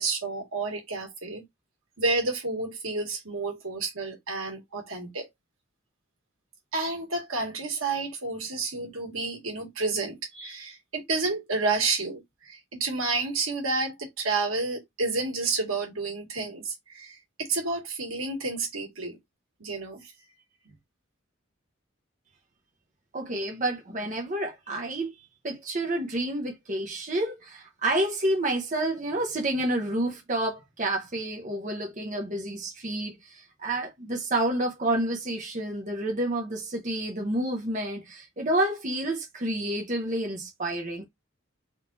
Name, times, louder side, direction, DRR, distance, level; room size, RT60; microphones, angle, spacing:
voice 1, 0.0-1.4 2.0-5.3 6.7-19.2 19.6-20.1 20.6-20.7, right 3 dB, 85° right, 1.7 m, -30 dB
voice 2, 23.1-25.1 25.4-41.0, right 1 dB, 35° right, 0.9 m, -29 dB
3.7 x 2.7 x 3.9 m
head